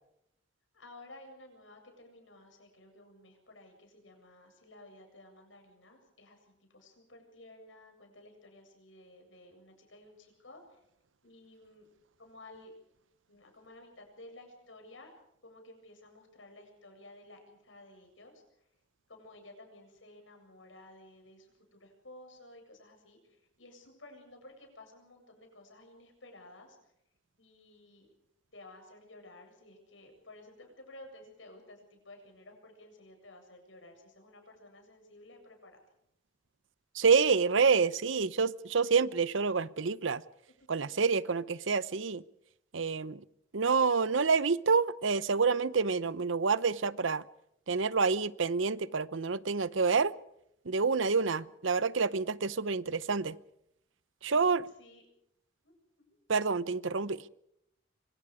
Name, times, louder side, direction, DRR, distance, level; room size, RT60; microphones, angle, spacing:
voice 1, 0.7-10.8 11.2-11.8 12.2-12.7 13.3-15.1 15.4-18.7 19.1-26.9 27.4-28.1 28.5-35.8 40.7-41.2 54.8-55.1 55.6-56.2, left 2 dB, 85° left, 7.8 m, -54 dB
voice 2, 36.9-40.2 40.7-42.2 42.7-43.2 43.5-47.2 47.7-50.1 50.7-53.3 54.2-54.6 56.3-57.2, right 5 dB, 90° right, 0.8 m, -28 dB
25.5 x 25.5 x 5.0 m
head